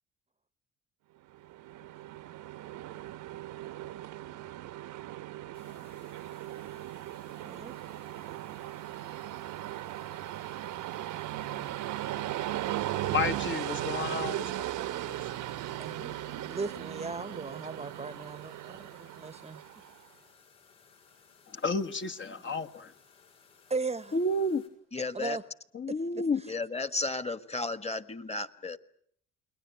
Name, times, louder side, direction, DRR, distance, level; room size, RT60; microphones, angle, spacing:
Train, 1.3-20.0, right 14 dB, 65° right, 1.2 m, -37 dB
sound 1, 5.5-24.7, left 6 dB, 85° left, 7.0 m, -61 dB
voice 1, 7.4-7.8 15.8-19.6 23.7-24.1 25.1-25.4 26.1-26.6, right 3 dB, 20° right, 1.1 m, -37 dB
voice 2, 13.1-14.5 15.1-15.2 21.5-22.9 24.1-24.6 25.7-26.4, left 2 dB, 35° left, 1.4 m, -31 dB
voice 3, 24.9-25.4 26.4-28.8, left 3 dB, 20° left, 1.6 m, -34 dB
29.5 x 21.0 x 9.1 m
hypercardioid pair, 65°, 34 cm